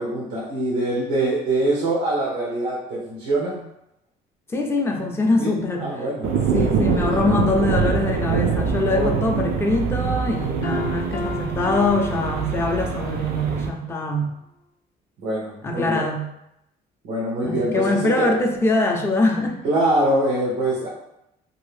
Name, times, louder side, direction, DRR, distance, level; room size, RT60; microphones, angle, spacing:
voice 1, 0.0-3.7 5.4-5.5 5.8-6.7 8.9-9.3 15.2-16.1 17.0-18.3 19.6-20.9, right 1 dB, 90° right, -5 dB, 0.8 m, -24 dB
voice 2, 4.5-5.9 6.5-14.3 15.6-16.3 17.4-19.6, left 2 dB, 15° left, 1 dB, 0.4 m, -23 dB
sound 1, 6.2-13.7, right 6 dB, 75° right, 0.5 m, -24 dB
Piano, 10.6-13.2, left 4 dB, 65° left, 0.6 m, -32 dB
2.6 x 2.6 x 3.2 m, 0.83 s
cardioid pair, 110°, 17 cm